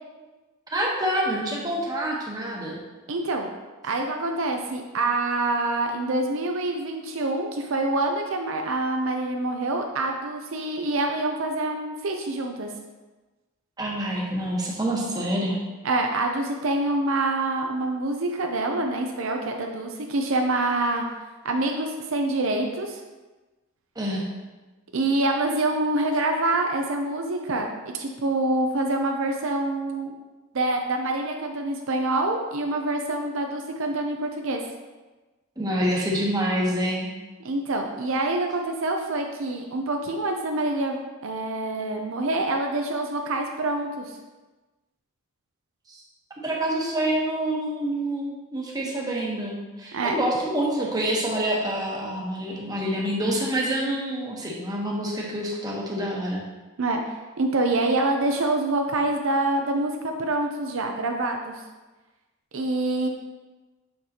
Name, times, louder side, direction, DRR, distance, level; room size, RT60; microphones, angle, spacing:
voice 1, 0.7-2.8 13.8-15.6 23.9-24.2 35.6-37.1 45.9-46.0 46.4-56.4, right 1 dB, 20° right, -3 dB, 1.1 m, -27 dB
voice 2, 3.1-3.5 3.8-12.7 15.8-21.1 21.4-23.0 24.9-30.2 30.5-34.6 37.4-44.1 49.9-50.2 56.8-57.0 57.4-61.6 62.5-63.1, right 2 dB, 70° right, 3 dB, 0.6 m, -26 dB
6.5 x 6.5 x 2.9 m, 1.2 s
head